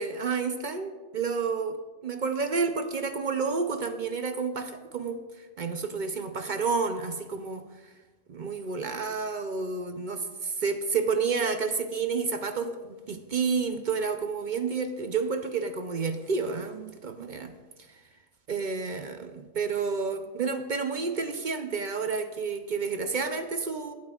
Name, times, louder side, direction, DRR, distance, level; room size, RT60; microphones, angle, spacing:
voice 1, 0.0-7.7 8.3-17.5 18.5-23.9, right 5 dB, 50° right, 8 dB, 0.6 m, -30 dB
19.5 x 8.4 x 2.4 m, 1.3 s
omnidirectional pair, 1.3 m